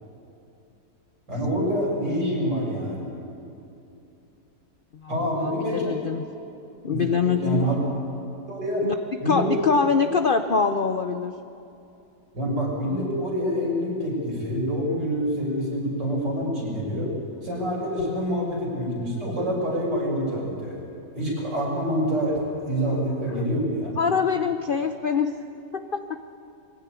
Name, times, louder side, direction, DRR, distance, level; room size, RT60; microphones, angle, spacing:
voice 1, 1.3-3.0 5.1-6.0 6.9-7.8 8.5-8.8 9.2-10.1 12.3-17.1 17.4-20.8 21.1-22.4 22.7-24.0, equal, 70° right, -3 dB, 7.2 m, -26 dB
voice 2, 5.4-6.2 6.8-7.6 8.8-8.9 9.3-11.3 23.4-23.5 24.0-25.3 25.7-26.2, left 5 dB, 70° left, 8 dB, 0.5 m, -24 dB
22.0 x 16.0 x 9.4 m, 2.7 s
omnidirectional pair, 1.9 m